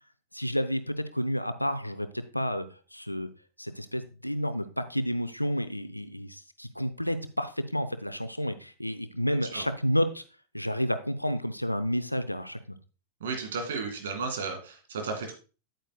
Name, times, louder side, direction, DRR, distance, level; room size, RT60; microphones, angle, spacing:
voice 1, 0.3-3.3 3.6-10.2 10.5-12.8, equal, 90° left, 11 dB, 0.6 m, -30 dB
voice 2, 13.2-15.3, right 4 dB, 60° right, 4 dB, 2.2 m, -33 dB
9.1 x 8.9 x 2.3 m, 0.34 s
figure-of-eight pair, 90°, 0 cm